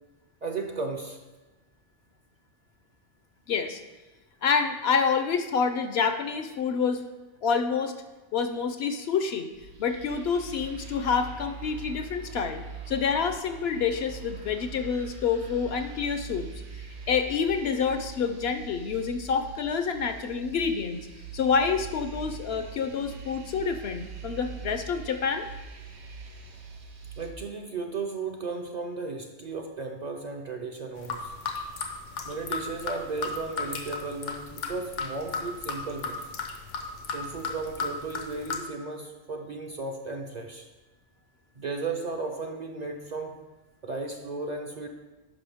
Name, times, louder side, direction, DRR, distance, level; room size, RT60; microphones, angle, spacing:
voice 1, 0.4-1.2 27.2-31.3 32.2-36.2 37.1-40.7 41.5-43.4 43.8-44.9, right 3 dB, 45° right, 3 dB, 0.6 m, -35 dB
voice 2, 3.5-3.8 4.4-7.0 7.4-8.0 8.3-9.5 9.8-16.5 17.1-21.0 21.3-25.5, left 6 dB, 65° left, 8 dB, 0.8 m, -27 dB
sound 1, 9.5-27.3, right 4 dB, 65° right, 1.1 m, -42 dB
sound 2, 31.0-38.6, left 4 dB, 85° left, 1.2 m, -35 dB
10.0 x 5.6 x 3.5 m, 1.1 s
omnidirectional pair, 1.2 m